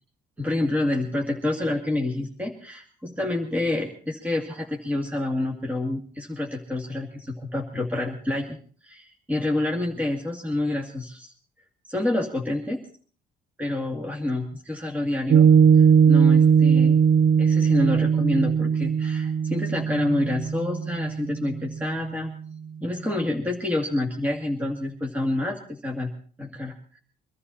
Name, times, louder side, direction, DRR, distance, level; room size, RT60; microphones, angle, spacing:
voice 1, 0.4-11.3 11.9-12.8 13.6-15.5 15.8-17.0 17.4-22.3 22.8-26.1 26.4-27.0, left 1 dB, 10° right, 0 dB, 2.3 m, -28 dB
Piano, 15.3-22.0, right 7 dB, 50° right, 0.9 m, -19 dB
24.0 x 13.0 x 4.2 m, 0.44 s
cardioid pair, 110°, 17 cm